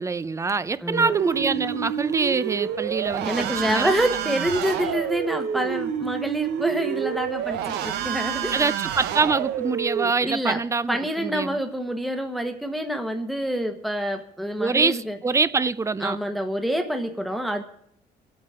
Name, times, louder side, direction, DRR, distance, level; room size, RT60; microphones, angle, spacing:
voice 1, 0.0-3.9 8.5-11.6 14.6-16.2, right 4 dB, 15° right, 0.5 m, -25 dB
voice 2, 0.8-1.1 3.2-8.6 10.2-10.6 10.9-15.2 16.0-17.6, equal, ahead, 1.1 m, -27 dB
sound 1, 0.9-10.1, right 9 dB, 80° right, 0.9 m, -28 dB
23.5 x 8.7 x 3.7 m
cardioid pair, 110°, 17 cm